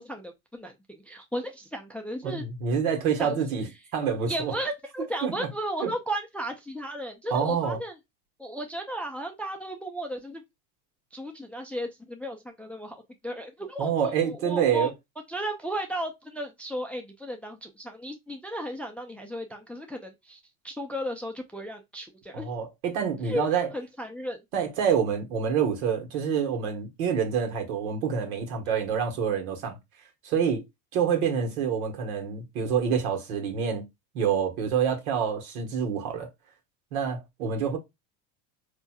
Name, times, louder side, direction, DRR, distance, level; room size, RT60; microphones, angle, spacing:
voice 1, 0.0-2.4 3.2-3.4 4.3-8.0 8.4-10.4 11.1-14.9 15.3-20.4 20.6-22.5 23.2-24.4 28.7-28.8, equal, 5° left, 0.3 m, -35 dB
voice 2, 2.2-3.7 3.9-4.5 5.2-5.5 5.8-5.9 7.3-7.8 13.8-14.9 22.3-23.7 24.5-29.8 30.2-30.6 30.9-33.9 34.1-36.3 36.9-37.8, right 7 dB, 85° right, 1.4 m, -27 dB
4.3 x 2.7 x 2.3 m
supercardioid pair, 120°, 42 cm